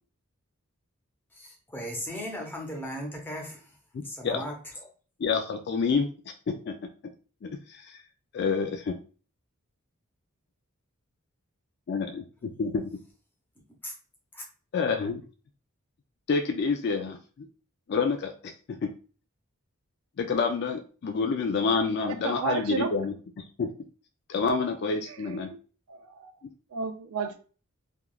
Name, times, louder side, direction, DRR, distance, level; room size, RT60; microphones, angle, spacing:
voice 1, 1.3-3.6 4.0-4.9 13.8-13.9 14.3-14.4, equal, 10° left, 0.7 m, -37 dB
voice 2, 3.9-4.4 5.2-6.1 6.5-6.8 7.4-8.0 8.3-9.0 11.9-12.8 14.7-15.2 16.3-17.5 17.9-18.5 18.8-18.9 20.2-23.7 24.3-25.5, left 5 dB, 50° left, 0.3 m, -28 dB
voice 3, 22.2-22.9 25.1-25.6 25.9-26.3 26.7-27.4, right 5 dB, 85° right, 0.4 m, -32 dB
3.4 x 2.3 x 2.3 m
head